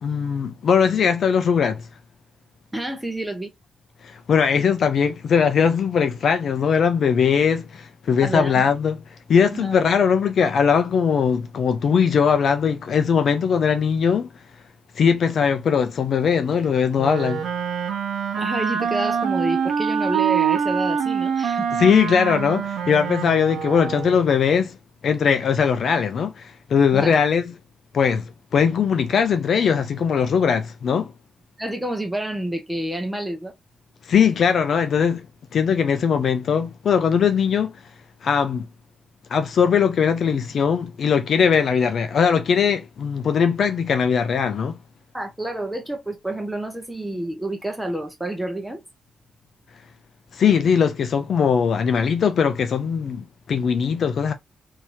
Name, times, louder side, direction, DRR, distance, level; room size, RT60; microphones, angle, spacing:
voice 1, 0.0-1.9 4.0-9.0 9.3-14.3 15.0-17.5 21.8-24.8 25.0-27.5 27.9-31.1 34.1-35.3 35.5-37.8 38.2-38.7 39.3-44.8 50.3-54.3, left 6 dB, 50° left, 0.4 m, -20 dB
voice 2, 2.7-3.5 8.2-8.7 9.5-9.8 18.4-21.7 26.9-27.1 31.6-33.5 45.1-48.8, right 1 dB, 5° right, 0.8 m, -29 dB
Wind instrument woodwind instrument, 17.0-24.3, right 7 dB, 80° right, 0.9 m, -25 dB
3.5 x 2.8 x 2.8 m
wide cardioid pair, 155°, 0 cm